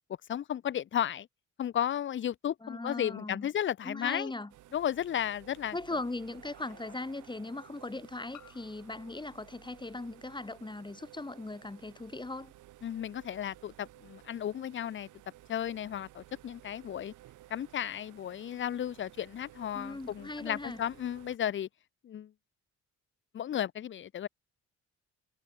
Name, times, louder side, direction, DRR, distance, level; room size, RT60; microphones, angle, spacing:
voice 1, 0.3-1.3 1.6-4.3 4.7-5.7 12.8-15.1 15.5-17.1 17.5-21.7 22.0-22.3 23.3-24.3, left 10 dB, 40° left, 0.6 m, -34 dB
voice 2, 2.6-3.5 3.8-4.5 5.7-12.5 19.7-20.8, left 2 dB, 15° left, 3.8 m, -39 dB
sound 1, 4.4-4.5 6.1-6.2 8.3-10.8, left 11 dB, 70° left, 5.7 m, -60 dB
sound 2, 4.5-21.4, right 15 dB, 85° right, 2.7 m, -56 dB
cardioid pair, 90°, 30 cm